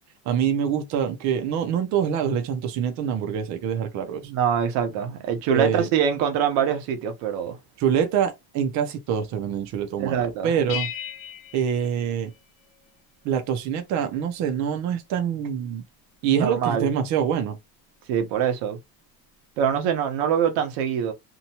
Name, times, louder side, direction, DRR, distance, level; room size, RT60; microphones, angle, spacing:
voice 1, 0.3-4.3 5.5-5.9 7.8-10.9 11.5-12.3 13.2-15.8 16.2-17.6, right 8 dB, 45° right, 0.5 m, -25 dB
voice 2, 4.2-7.6 10.0-10.6 16.4-16.9 18.1-18.8 19.6-21.1, right 8 dB, 85° right, 0.9 m, -24 dB
sound 1, 10.7-12.9, left 9 dB, 85° left, 0.9 m, -37 dB
2.8 x 2.1 x 2.8 m
cardioid pair, 180°, 43 cm